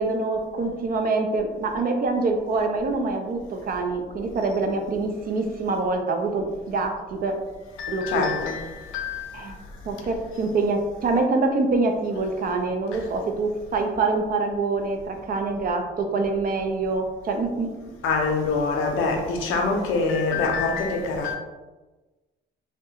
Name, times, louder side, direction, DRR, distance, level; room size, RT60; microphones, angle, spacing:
voice 1, 0.0-7.3 7.9-8.3 9.3-9.6 9.9-17.9, right 3 dB, 45° right, 4 dB, 0.4 m, -25 dB
voice 2, 7.8-9.3 18.0-21.4, left 4 dB, 90° left, 2 dB, 0.5 m, -25 dB
2.7 x 2.1 x 2.7 m, 1.2 s
cardioid pair, 90°, 20 cm